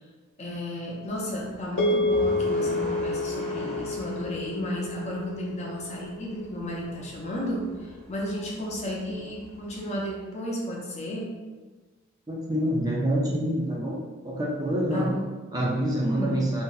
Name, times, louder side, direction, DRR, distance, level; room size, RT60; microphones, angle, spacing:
voice 1, 0.4-11.4 14.9-15.3 16.0-16.5, equal, 35° left, -3 dB, 0.6 m, -33 dB
sound 1, 1.1-10.0, left 1 dB, 5° left, 0.8 m, -43 dB
sound 2, 1.8-6.3, left 2 dB, 60° left, 0.8 m, -29 dB
voice 2, 12.3-14.0 14.2-15.1 15.5-16.6, right 1 dB, 20° right, -3 dB, 0.4 m, -26 dB
2.6 x 2.1 x 3.8 m, 1.3 s
head